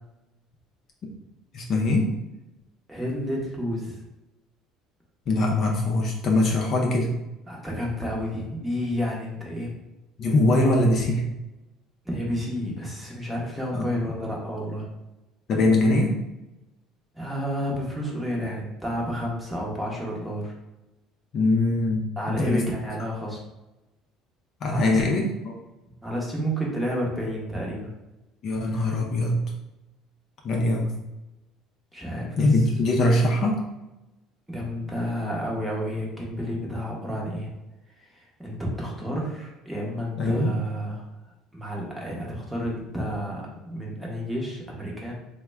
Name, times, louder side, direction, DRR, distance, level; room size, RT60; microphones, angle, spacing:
voice 1, 1.5-2.1 5.3-7.1 10.2-11.2 13.7-14.2 15.5-16.2 21.3-22.6 24.6-25.6 28.4-29.4 30.4-30.9 32.4-33.6 40.2-40.6, left 2 dB, 45° left, 0 dB, 0.5 m, -22 dB
voice 2, 2.9-4.0 7.5-9.7 12.0-14.8 17.1-20.5 22.2-23.4 24.7-24.9 26.0-27.9 31.9-32.3 34.5-37.5 38.0-41.0 41.5-45.1, equal, 5° right, -3 dB, 0.8 m, -30 dB
3.4 x 2.1 x 3.3 m, 0.99 s
cardioid pair, 145°, 0 cm